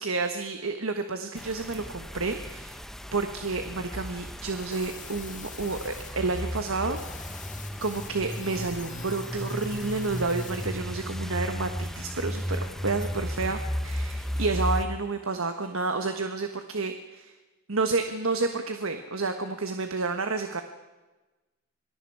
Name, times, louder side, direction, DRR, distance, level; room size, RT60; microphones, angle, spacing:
voice 1, 0.0-2.8 3.1-7.3 7.8-17.3 17.7-20.6, right 3 dB, 70° right, 7 dB, 1.4 m, -30 dB
sound 1, 1.3-14.8, equal, ahead, 0.8 m, -34 dB
sound 2, 4.5-10.7, left 8 dB, 35° left, 1.6 m, -46 dB
26.5 x 21.0 x 4.8 m, 1.2 s
head